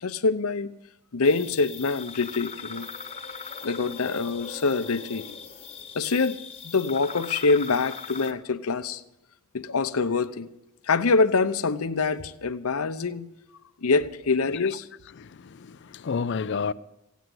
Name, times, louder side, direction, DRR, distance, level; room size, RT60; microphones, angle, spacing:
voice 1, 0.0-0.7 1.1-2.9 3.6-5.2 5.9-9.0 9.5-10.5 10.9-13.3 13.8-14.9, left 4 dB, 75° left, 0.8 m, -25 dB
sound 1, 1.2-8.3, left 5 dB, 25° left, 1.1 m, -40 dB
voice 2, 15.2-16.7, left 5 dB, 55° left, 0.4 m, -30 dB
16.5 x 9.3 x 7.8 m
head